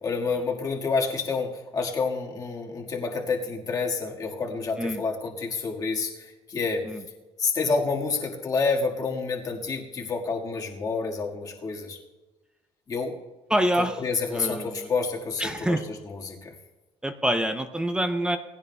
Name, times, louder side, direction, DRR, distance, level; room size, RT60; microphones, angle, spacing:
voice 1, 0.0-6.8 7.4-12.0 12.9-13.1 13.8-15.8 16.0-16.5, left 4 dB, 30° left, -1 dB, 1.6 m, -28 dB
voice 2, 13.5-14.0 14.3-14.9 15.4-15.8 17.0-18.4, right 1 dB, 5° right, 7 dB, 0.5 m, -26 dB
20.5 x 16.0 x 2.2 m, 1.2 s
cardioid pair, 160°, 12 cm